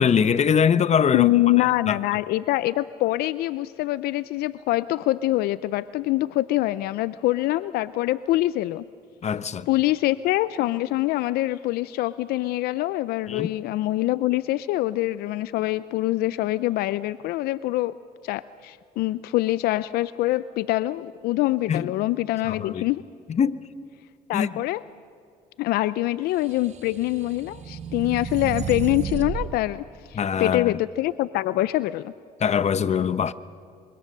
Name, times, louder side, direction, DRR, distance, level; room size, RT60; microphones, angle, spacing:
voice 1, 0.0-1.3 1.6-2.0 9.2-9.7 13.3-13.5 21.7-21.9 22.4-22.9 23.3-23.6 24.3-24.5 30.1-30.8 32.4-33.3, left 7 dB, 45° left, 1.0 m, -22 dB
voice 2, 1.1-8.8 9.7-17.9 18.2-23.0 24.3-24.8 25.6-32.1, left 17 dB, 80° left, 0.5 m, -24 dB
sound 1, 26.6-29.5, right 7 dB, 45° right, 1.5 m, -32 dB
25.0 x 23.5 x 6.6 m
supercardioid pair, 70°, 16 cm